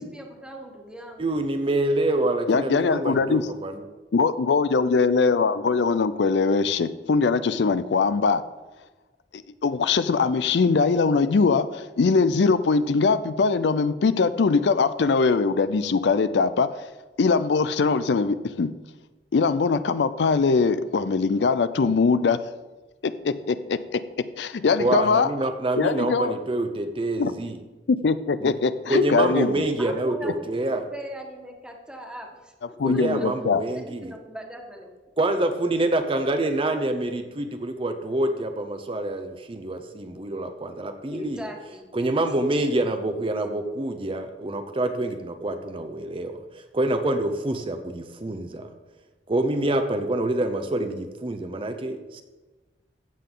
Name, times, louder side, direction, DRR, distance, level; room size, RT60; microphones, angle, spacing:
voice 1, 0.0-1.4 29.8-32.8 33.2-33.3 33.7-34.9 41.1-41.9, equal, 5° right, 1 dB, 1.5 m, -39 dB
voice 2, 1.2-3.9 24.8-27.6 28.4-28.5 28.9-30.8 32.8-34.1 35.2-41.4 41.9-48.7 49.3-52.2, right 1 dB, 30° right, 7 dB, 0.6 m, -26 dB
voice 3, 2.5-3.5 4.1-8.4 9.3-16.7 17.2-18.7 19.3-22.4 23.0-24.0 24.4-25.3 25.8-26.3 27.2-27.3 27.9-29.5 32.8-33.6, left 4 dB, 70° left, 13 dB, 0.4 m, -22 dB
15.0 x 7.6 x 3.8 m, 1.2 s
head